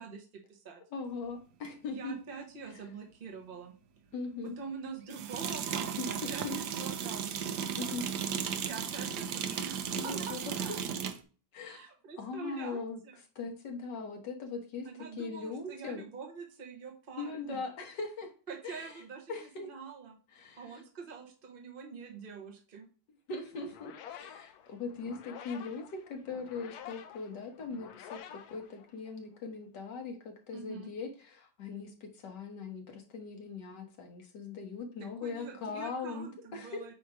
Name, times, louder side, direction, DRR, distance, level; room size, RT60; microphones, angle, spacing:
voice 1, 0.0-0.8 1.9-3.7 4.6-8.0 8.6-10.8 11.6-13.2 14.8-17.6 18.5-20.2 20.6-22.8 30.5-30.9 35.2-36.9, right 5 dB, 35° right, 1 dB, 1.2 m, -45 dB
voice 2, 0.9-2.2 4.1-4.6 6.0-6.6 7.7-8.1 10.0-10.4 11.5-11.8 12.2-13.0 13.4-14.9 15.2-16.1 17.2-18.3 18.6-18.9 19.3-19.7 20.3-20.8 23.3-36.8, left 4 dB, 85° left, 3 dB, 1.9 m, -40 dB
sound 1, 1.6-1.7 5.1-11.2, right 8 dB, 75° right, 1.3 m, -35 dB
sound 2, 23.5-29.4, left 9 dB, 70° left, 1.0 m, -50 dB
8.8 x 2.9 x 4.7 m, 0.38 s
omnidirectional pair, 1.8 m